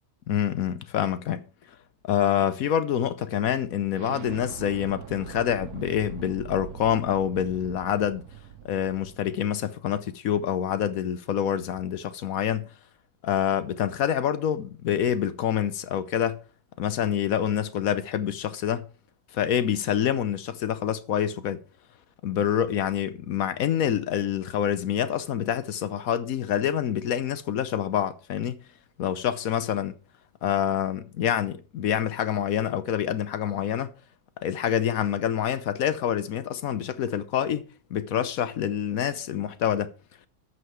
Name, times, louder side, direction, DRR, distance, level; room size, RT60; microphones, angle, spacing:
voice 1, 0.3-1.4 2.0-8.2 8.6-12.7 13.2-16.4 16.8-18.9 19.3-21.6 22.2-28.6 29.0-29.9 30.4-33.9 34.4-39.9, left 9 dB, 70° left, 1.1 m, -26 dB
Explosion, 3.9-9.5, right 9 dB, 80° right, 1.4 m, -42 dB
13.5 x 5.7 x 4.6 m
omnidirectional pair, 1.6 m